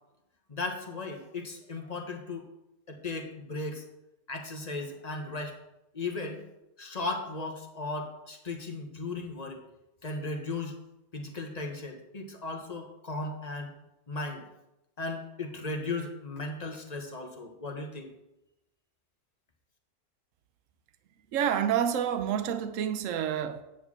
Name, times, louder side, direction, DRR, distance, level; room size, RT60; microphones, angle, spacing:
voice 1, 0.5-2.5 2.9-3.8 4.3-5.6 5.9-6.4 6.8-9.6 10.0-10.7 11.1-13.7 14.1-14.5 15.0-18.1, left 3 dB, 25° left, 1.1 m, -36 dB
voice 2, 21.3-23.6, right 9 dB, 60° right, 1.0 m, -28 dB
9.1 x 4.5 x 7.3 m
omnidirectional pair, 1.8 m